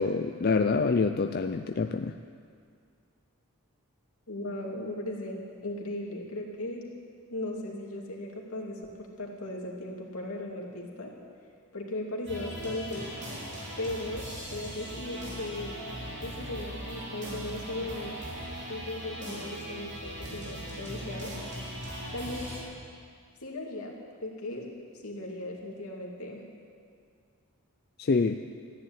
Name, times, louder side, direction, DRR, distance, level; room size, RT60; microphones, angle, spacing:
voice 1, 0.0-2.1 28.0-28.4, left 4 dB, 45° left, 7 dB, 0.4 m, -26 dB
voice 2, 4.3-6.8 7.3-11.1 11.7-13.1 13.8-15.8 16.2-18.2 18.7-21.3 22.1-22.5 23.4-24.7 25.0-26.4, left 1 dB, 75° left, -1 dB, 2.5 m, -37 dB
sound 1, 12.3-22.6, equal, 50° right, 3.8 m, -39 dB
14.5 x 10.5 x 8.9 m, 2.2 s
head